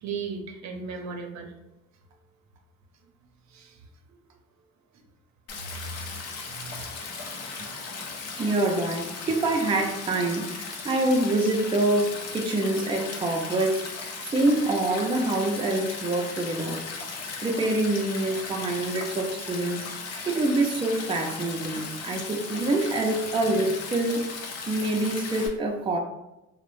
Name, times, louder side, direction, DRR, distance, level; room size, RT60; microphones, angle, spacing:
voice 1, 0.0-1.5 3.5-3.8 5.8-5.9 6.5-6.8, right 5 dB, 65° right, 3 dB, 0.6 m, -36 dB
Stream, 5.5-25.5, left 4 dB, 55° left, 0.6 m, -37 dB
voice 2, 8.3-14.0 14.3-16.8 17.4-19.8 20.3-24.2 24.7-26.0, right 2 dB, 20° right, 2 dB, 0.4 m, -26 dB
2.4 x 2.0 x 3.0 m, 0.95 s
cardioid pair, 90°, 30 cm